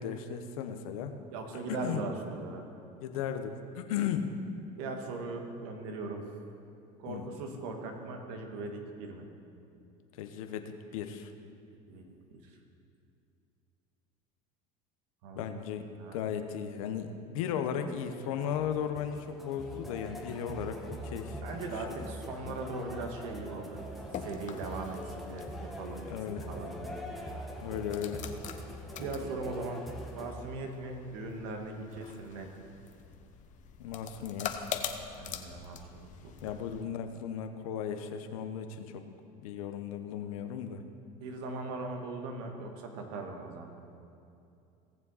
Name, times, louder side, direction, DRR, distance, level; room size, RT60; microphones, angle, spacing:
voice 1, 0.0-1.1 1.7-2.0 3.0-4.3 7.1-7.2 10.2-11.3 15.3-15.9 16.1-21.4 21.9-22.0 26.1-26.5 27.6-28.3 33.8-34.7 36.4-39.0 39.4-40.8, left 8 dB, 90° left, 7 dB, 0.9 m, -36 dB
voice 2, 1.3-2.6 4.8-6.3 7.0-9.2 11.9-12.0 12.3-12.5 15.2-15.5 16.0-16.2 21.4-23.8 24.2-26.1 26.5-27.2 29.0-29.9 30.1-32.5 35.2-36.5 41.2-43.8, right 3 dB, 80° right, 3 dB, 1.6 m, -39 dB
sound 1, 17.9-30.3, equal, ahead, 1.3 m, -43 dB
sound 2, 23.8-36.8, left 8 dB, 45° left, 0.9 m, -44 dB
18.0 x 7.1 x 4.1 m, 2.6 s
supercardioid pair, 105°, 17 cm